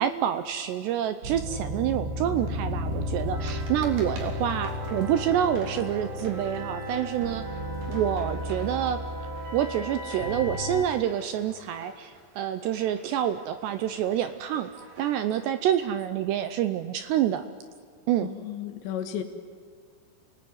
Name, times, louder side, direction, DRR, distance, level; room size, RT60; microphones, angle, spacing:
voice 1, 0.0-7.5 7.9-9.0 9.5-14.7 15.0-17.4 18.1-18.3, right 10 dB, 80° right, 10 dB, 2.6 m, -27 dB
sound 1, 1.2-10.8, left 1 dB, 30° right, 4.7 m, -33 dB
sound 2, 2.3-15.4, right 2 dB, 45° right, 4.7 m, -51 dB
voice 2, 18.2-19.2, left 10 dB, 65° left, 7 dB, 3.7 m, -33 dB
29.5 x 19.0 x 9.6 m, 2.1 s
omnidirectional pair, 5.7 m